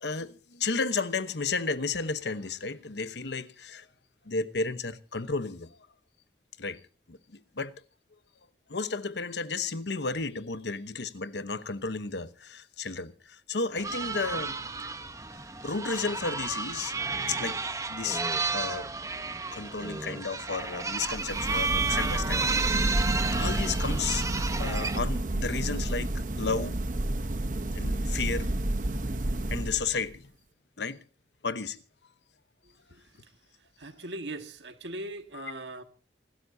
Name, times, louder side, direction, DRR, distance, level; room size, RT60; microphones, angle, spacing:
voice 1, 0.0-3.9 4.2-5.8 6.6-6.8 7.1-7.8 8.7-14.6 15.6-16.9 17.3-17.6 17.9-18.2 18.5-18.9 19.5-24.3 24.6-26.8 27.7-28.5 29.5-30.3 30.8-31.0 31.4-31.8 35.3-35.5, left 4 dB, 80° left, 1.0 m, -33 dB
sound 1, 13.8-25.0, right 4 dB, 20° right, 0.8 m, -32 dB
sound 2, 21.0-30.1, right 1 dB, 45° right, 0.9 m, -30 dB
voice 2, 33.8-35.8, right 1 dB, 90° right, 1.7 m, -39 dB
27.0 x 13.0 x 2.7 m
head